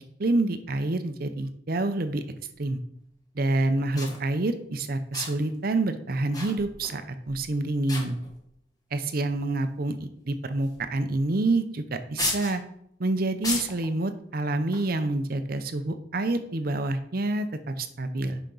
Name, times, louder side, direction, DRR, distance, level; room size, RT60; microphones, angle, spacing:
voice 1, 0.2-2.2 2.6-2.8 3.3-7.0 7.3-8.2 8.9-12.6 13.0-18.4, right 2 dB, 50° right, 9 dB, 0.7 m, -27 dB
sound 1, 2.6-2.7 3.6-3.7 3.9-4.2 5.1-5.5 6.3-7.0 7.3-7.5 7.9-8.5 9.3-9.4 10.6-10.9 11.2-11.3 12.2-12.6 13.4-13.9 14.7-14.9, left 2 dB, 20° left, 1.5 m, -33 dB
10.0 x 5.1 x 3.9 m, 0.72 s
head